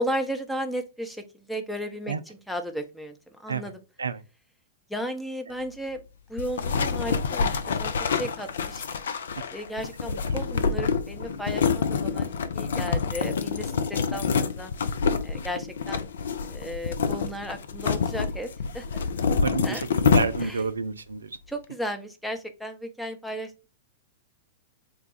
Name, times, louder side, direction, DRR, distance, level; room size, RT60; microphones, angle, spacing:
voice 1, 0.0-3.8 4.9-6.0 6.3-8.9 9.5-12.3 12.5-14.7 15.2-16.1 16.4-18.5 18.7-19.0 19.6-19.8 20.4-20.6 21.5-23.7, equal, ahead, 0.6 m, -34 dB
sound 1, 6.4-20.7, left 5 dB, 65° left, 0.4 m, -27 dB
voice 2, 19.3-21.4, right 5 dB, 75° right, 0.3 m, -30 dB
4.0 x 2.2 x 3.7 m
figure-of-eight pair, 100°, 0 cm